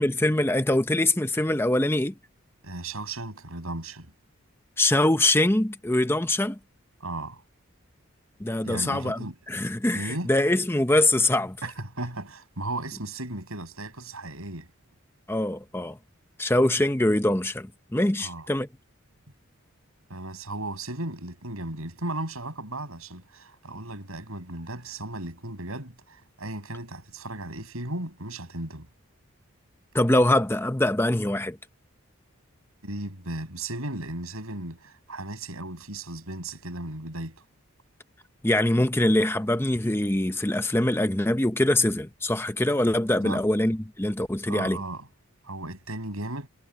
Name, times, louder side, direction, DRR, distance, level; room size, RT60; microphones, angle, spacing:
voice 1, 0.0-2.2 4.8-6.6 8.4-11.6 15.3-16.0 16.4-18.7 29.9-31.6 38.4-44.8, left 1 dB, 10° left, 0.7 m, -23 dB
voice 2, 2.6-4.1 7.0-7.4 8.6-9.3 9.9-10.3 11.6-14.7 18.2-18.5 20.1-28.9 32.8-37.4 43.2-43.4 44.4-45.1 45.4-46.5, right 2 dB, 90° right, 6.9 m, -35 dB
head